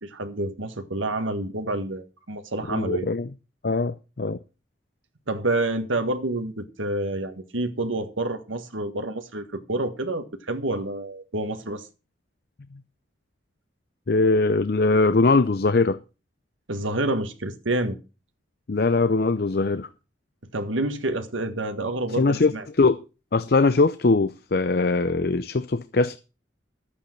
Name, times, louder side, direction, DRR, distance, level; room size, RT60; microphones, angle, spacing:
voice 1, 0.0-3.1 5.3-11.9 16.7-18.0 20.5-22.6, right 2 dB, 85° right, 1.7 m, -28 dB
voice 2, 2.7-3.3 3.6-4.4 14.1-16.0 18.7-19.9 22.1-23.0 23.3-26.2, left 3 dB, 50° left, 0.6 m, -21 dB
12.5 x 8.5 x 5.9 m
head